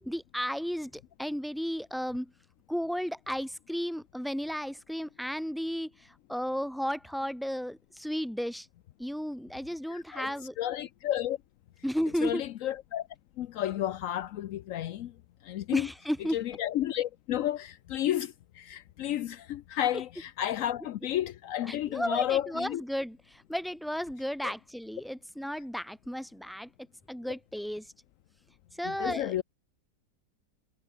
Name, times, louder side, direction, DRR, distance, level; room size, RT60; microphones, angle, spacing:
voice 1, 0.0-2.3 2.7-8.7 9.0-10.6 11.8-12.4 15.7-16.4 21.7-26.7 27.1-27.9 28.8-29.4, equal, ahead, 3.9 m, -34 dB
voice 2, 9.9-11.4 12.2-13.1 13.4-15.1 15.4-15.9 16.3-22.8 24.4-24.5 28.8-29.4, left 12 dB, 80° left, 0.7 m, -32 dB
omnidirectional pair, 2.0 m